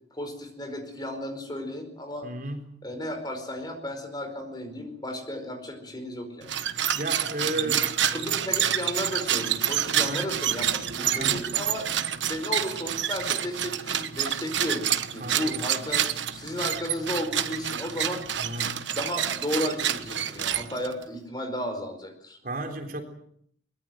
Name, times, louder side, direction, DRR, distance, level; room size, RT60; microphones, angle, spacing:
voice 1, 0.1-2.3 2.8-6.5 7.6-7.7 8.1-11.9 12.2-14.9 15.1-18.5 18.9-22.4, left 1 dB, 20° left, 6 dB, 4.8 m, -34 dB
voice 2, 2.2-2.6 6.9-7.8 9.9-10.3 11.0-11.4 15.2-15.6 18.4-18.8 22.4-23.0, right 1 dB, 45° right, 4 dB, 3.8 m, -33 dB
sound 1, 6.4-21.0, right 10 dB, 75° right, 1.3 m, -28 dB
23.5 x 21.0 x 7.8 m, 0.67 s
head